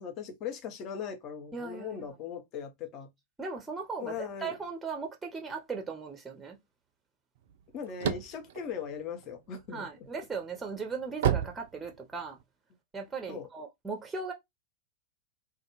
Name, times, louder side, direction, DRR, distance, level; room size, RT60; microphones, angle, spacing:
voice 1, 0.0-3.1 4.0-4.5 7.7-9.9 13.3-13.5, left 7 dB, 35° left, 0.7 m, -39 dB
voice 2, 1.5-2.0 3.4-4.1 4.4-6.6 9.7-12.4 12.9-14.3, right 4 dB, 10° right, 0.6 m, -37 dB
sound 1, 7.5-9.7 10.2-12.4, right 9 dB, 55° right, 0.3 m, -31 dB
2.3 x 2.3 x 3.0 m
figure-of-eight pair, 90°, 0 cm